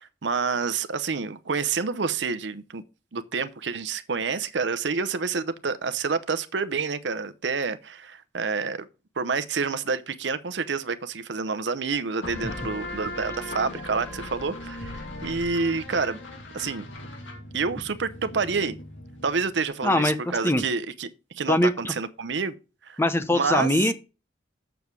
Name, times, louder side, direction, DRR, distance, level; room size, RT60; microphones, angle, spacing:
voice 1, 0.0-2.8 3.1-8.9 9.2-16.2 16.5-16.8 17.5-18.8 19.2-21.1 21.3-22.5 22.8-23.0 23.3-23.9, right 5 dB, 70° right, 0.7 m, -28 dB
sound 1, 12.2-19.6, left 1 dB, 85° left, 2.5 m, -38 dB
voice 2, 19.8-20.2 20.4-20.6 21.5-21.9 23.0-23.9, left 1 dB, 15° left, 0.7 m, -22 dB
7.1 x 7.0 x 4.6 m
head